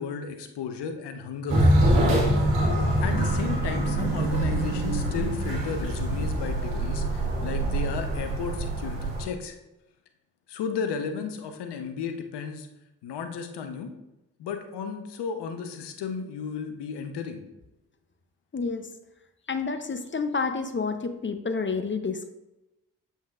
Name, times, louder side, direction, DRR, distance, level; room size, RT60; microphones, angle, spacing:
voice 1, 0.0-1.6 2.8-9.6 10.5-12.7 13.0-13.9 14.4-17.4, left 6 dB, 70° left, 7 dB, 0.9 m, -34 dB
sound 1, 1.5-9.2, right 1 dB, 85° right, 1.5 m, -24 dB
voice 2, 18.5-18.9 19.5-22.3, left 4 dB, 30° left, 8 dB, 0.7 m, -29 dB
7.3 x 5.7 x 2.4 m, 0.95 s
hypercardioid pair, 40°, 42 cm